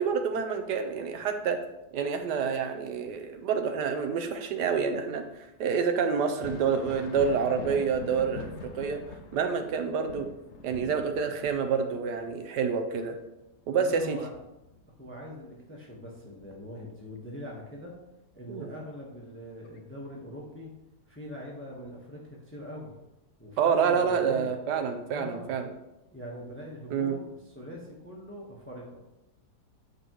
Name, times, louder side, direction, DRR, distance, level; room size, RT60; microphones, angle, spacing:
voice 1, 0.0-1.6 1.9-5.2 5.6-8.5 8.7-9.0 9.3-10.3 10.6-13.2 13.7-14.2 18.5-18.7 23.6-25.7 26.9-27.2, right 6 dB, 75° right, 6 dB, 1.3 m, -28 dB
Thunder, 6.3-15.6 16.0-17.2 18.8-18.9 19.6-19.8, left 4 dB, 65° left, 0.7 m, -45 dB
voice 2, 13.7-14.3 15.0-17.9 18.3-20.7 21.1-22.9 23.4-24.5 25.1-25.5 26.1-29.0, left 1 dB, 10° left, -3 dB, 1.0 m, -42 dB
8.1 x 5.1 x 3.1 m, 0.92 s
omnidirectional pair, 1.9 m